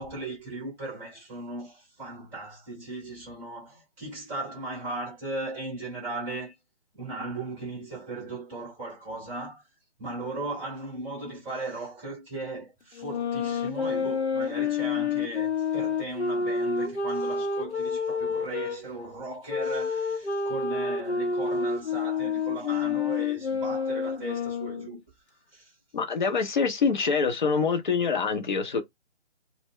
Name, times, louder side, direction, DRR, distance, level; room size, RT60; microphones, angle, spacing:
voice 1, 0.0-6.5 6.9-9.6 10.0-25.0 25.5-25.7, right 2 dB, 5° right, 0.7 m, -37 dB
sound 1, 13.0-18.8 19.5-25.0, left 5 dB, 75° left, 0.7 m, -29 dB
voice 2, 25.9-28.8, left 5 dB, 45° left, 0.7 m, -25 dB
2.2 x 2.1 x 3.6 m
figure-of-eight pair, 150°, 34 cm